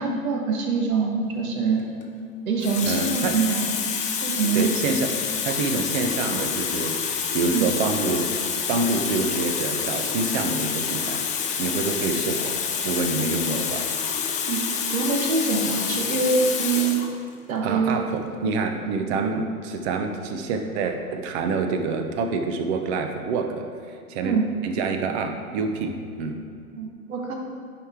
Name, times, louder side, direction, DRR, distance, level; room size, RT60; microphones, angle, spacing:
voice 1, 0.0-1.9 2.5-3.7 4.2-4.7 7.5-7.7 14.5-14.7 14.9-17.0 17.5-18.0 24.2-24.5 26.8-27.3, right 4 dB, 65° right, 1 dB, 1.5 m, -24 dB
Water tap faucet, 1.8-2.0 2.6-17.1 18.0-18.2, left 7 dB, 15° left, 0.5 m, -28 dB
voice 2, 2.8-3.4 4.5-8.3 8.7-11.3 11.6-12.6 12.8-13.9 17.6-24.4 24.6-26.4, right 4 dB, 45° right, 5 dB, 0.9 m, -27 dB
9.8 x 4.9 x 3.6 m, 2.4 s
hypercardioid pair, 115°, 45 cm